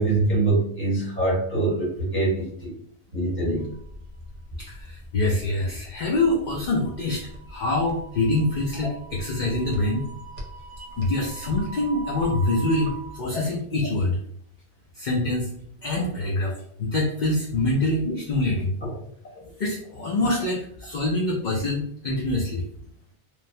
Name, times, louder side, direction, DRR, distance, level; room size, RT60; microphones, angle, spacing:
voice 1, 0.0-2.8 3.1-3.7 18.0-18.2 18.8-18.9, right 2 dB, 10° left, -7 dB, 1.1 m, -24 dB
sound 1, 3.6-13.2, right 1 dB, 55° right, 1.0 m, -41 dB
voice 2, 4.6-10.1 11.0-14.2 14.9-15.5 15.8-18.7 19.6-22.6, left 2 dB, 55° left, -2 dB, 0.5 m, -25 dB
3.1 x 2.1 x 2.6 m, 0.65 s
omnidirectional pair, 1.1 m